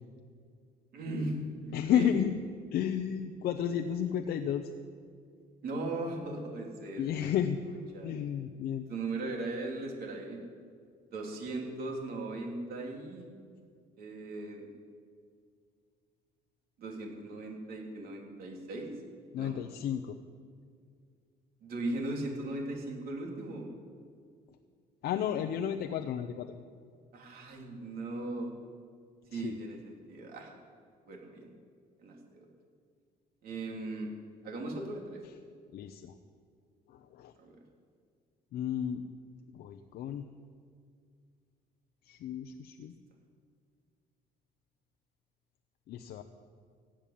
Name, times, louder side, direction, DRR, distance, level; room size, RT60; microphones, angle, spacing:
voice 1, 0.9-2.1 3.6-4.1 5.6-7.4 7.9-8.1 8.9-10.4 11.1-13.3 14.0-14.7 16.8-18.9 19.4-19.6 21.6-23.7 27.1-28.5 29.3-30.5 31.1-31.5 32.0-32.5 33.4-34.1 34.4-35.2 37.4-37.6, right 2 dB, 65° right, 0 dB, 3.7 m, -38 dB
voice 2, 1.7-2.3 2.7-4.7 7.0-7.6 8.0-8.9 19.3-20.2 25.0-26.5 29.3-29.6 35.7-36.1 36.9-37.3 38.5-39.0 39.5-40.3 42.0-42.9 45.9-46.2, left 9 dB, 70° left, 6 dB, 0.9 m, -32 dB
16.0 x 8.9 x 9.3 m, 2.1 s
cardioid pair, 110°, 17 cm